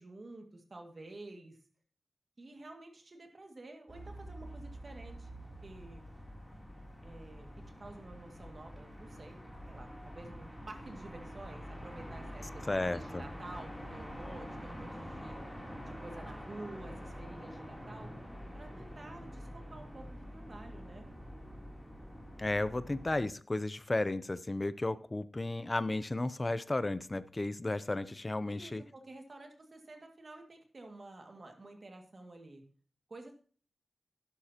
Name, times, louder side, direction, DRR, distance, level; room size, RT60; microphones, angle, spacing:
voice 1, 0.0-1.6 2.4-5.3 5.6-6.0 7.0-7.5 7.8-9.4 9.7-15.4 15.9-18.1 18.5-21.1 28.5-32.6 33.1-33.3, right 2 dB, 40° right, 3 dB, 2.0 m, -50 dB
sound 1, 3.9-23.2, equal, 5° left, 3.0 m, -46 dB
voice 2, 12.7-13.2 22.4-28.8, left 2 dB, 25° left, 15 dB, 0.6 m, -34 dB
11.5 x 11.5 x 2.9 m, 0.42 s
wide cardioid pair, 130°, 0 cm